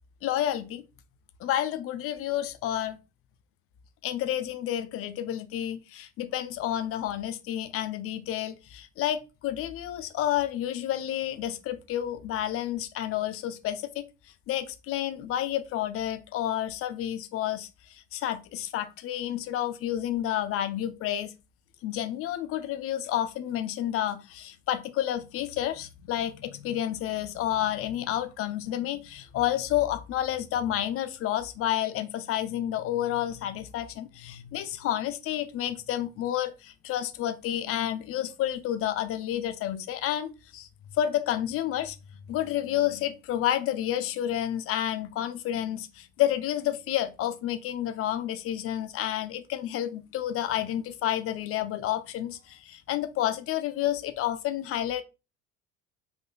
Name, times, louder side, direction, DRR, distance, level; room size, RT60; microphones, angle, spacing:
voice 1, 0.2-0.8 1.4-3.0 4.0-14.1 14.5-21.3 21.8-40.7 41.0-42.0 42.3-55.0, left 12 dB, 35° left, 0.6 m, -30 dB
5.0 x 3.8 x 2.3 m
figure-of-eight pair, 60°, 39 cm